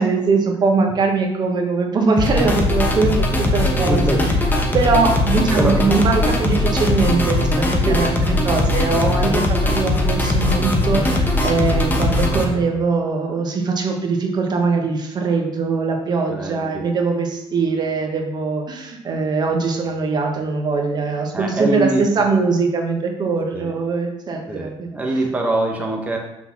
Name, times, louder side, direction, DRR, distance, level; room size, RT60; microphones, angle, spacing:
voice 1, 0.0-4.3 4.7-24.9, right 4 dB, 40° right, 3 dB, 1.1 m, -21 dB
sound 1, 2.2-12.4, left 1 dB, 15° left, 1.1 m, -19 dB
voice 2, 3.9-4.2 5.5-5.8 7.8-8.1 16.3-16.8 21.3-22.0 23.5-23.7 24.5-26.2, right 2 dB, 15° right, 0 dB, 0.9 m, -23 dB
6.1 x 4.0 x 5.7 m, 0.87 s
cardioid pair, 125°, 11 cm